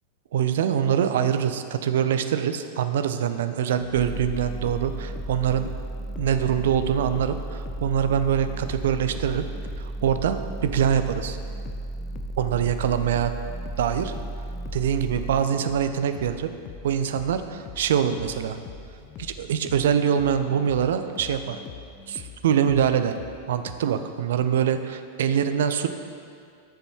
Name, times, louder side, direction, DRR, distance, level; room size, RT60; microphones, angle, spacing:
voice 1, 0.3-5.7 6.2-9.4 9.8-11.4 12.4-13.3 13.8-14.1 14.7-16.5 16.8-18.6 19.2-21.6 22.1-23.1 23.5-25.9, right 8 dB, 60° right, 9 dB, 0.5 m, -24 dB
sound 1, 3.8-23.8, left 6 dB, 35° left, 0.6 m, -44 dB
sound 2, 3.9-15.4, right 2 dB, 5° right, 0.3 m, -34 dB
10.0 x 7.0 x 4.4 m, 2.3 s
figure-of-eight pair, 90°, 0 cm